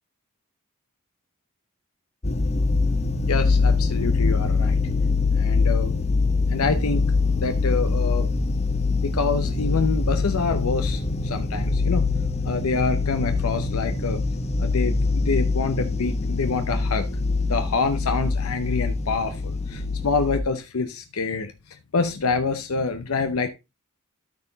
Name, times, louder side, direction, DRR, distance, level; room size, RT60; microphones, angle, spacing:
sound 1, 2.2-20.4, left 3 dB, 30° left, 0.9 m, -23 dB
voice 1, 3.3-4.8 5.4-5.9 6.5-8.2 9.0-12.1 12.4-14.2 14.6-17.1 17.4-23.5, left 4 dB, 75° left, 8 dB, 0.7 m, -26 dB
13.0 x 4.5 x 4.0 m, 0.26 s
head